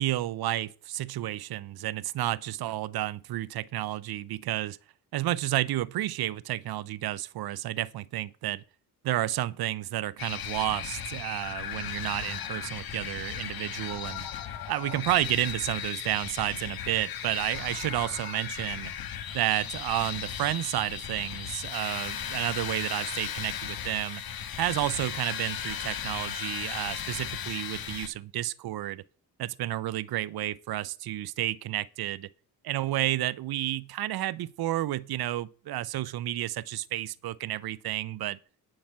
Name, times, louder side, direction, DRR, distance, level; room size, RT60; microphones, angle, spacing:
voice 1, 0.0-4.8 5.1-8.6 9.0-14.3 14.7-18.9 19.3-24.2 24.6-29.0 29.4-32.3 32.6-38.4, right 14 dB, 80° right, 0.7 m, -31 dB
sound 1, 10.2-28.1, left 9 dB, 75° left, 1.5 m, -36 dB
10.5 x 6.1 x 7.4 m
cardioid pair, 80°, 37 cm